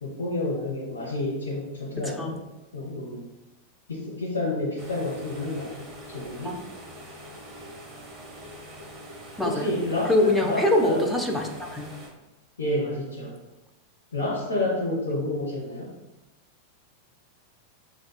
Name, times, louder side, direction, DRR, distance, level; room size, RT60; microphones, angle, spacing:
voice 1, 0.0-2.4 2.7-3.2 3.9-6.6 9.4-11.0 12.6-13.4 14.1-15.9, left 1 dB, 65° left, -7 dB, 0.9 m, -29 dB
voice 2, 2.0-2.4 6.4-6.5 9.4-9.7 10.1-11.9, left 1 dB, 5° left, 1 dB, 0.6 m, -24 dB
sound 1, 4.8-12.1, equal, 15° right, 1.2 m, -44 dB
7.5 x 2.5 x 2.3 m, 1.0 s
figure-of-eight pair, 90°, 0 cm